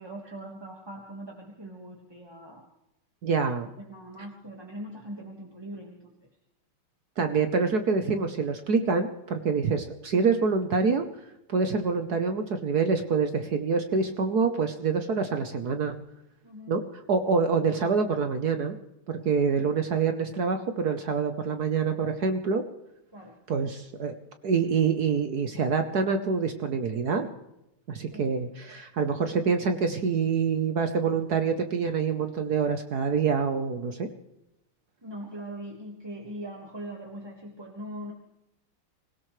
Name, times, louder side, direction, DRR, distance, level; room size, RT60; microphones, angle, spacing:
voice 1, 0.0-2.7 3.8-6.3 16.4-16.8 23.1-23.4 28.1-28.4 35.0-38.1, right 1 dB, 15° right, -1 dB, 1.5 m, -41 dB
voice 2, 3.2-3.7 7.2-11.0 11.5-15.9 16.7-16.8 17.1-18.8 19.1-22.6 23.5-24.2 24.4-27.3 27.9-34.1, right 5 dB, 55° right, 7 dB, 1.3 m, -26 dB
25.5 x 17.0 x 3.2 m, 0.87 s
omnidirectional pair, 2.4 m